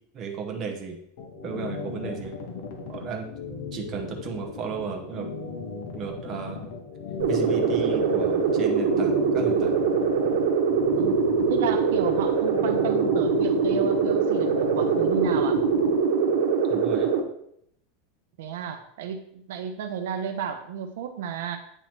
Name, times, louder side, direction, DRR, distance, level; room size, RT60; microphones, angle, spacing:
voice 1, 0.1-1.0 1.4-2.3 2.9-3.3 3.7-5.3 6.0-6.6 7.3-9.7 16.7-17.1, right 5 dB, 20° right, 2 dB, 0.8 m, -34 dB
sound 1, 1.2-15.9, left 5 dB, 45° left, 1.0 m, -36 dB
sound 2, 7.2-17.2, right 5 dB, 80° right, 1.1 m, -23 dB
voice 2, 10.9-15.7 18.4-21.6, right 7 dB, 60° right, 6 dB, 0.5 m, -33 dB
8.9 x 3.0 x 4.3 m, 0.72 s
supercardioid pair, 180°, 0 cm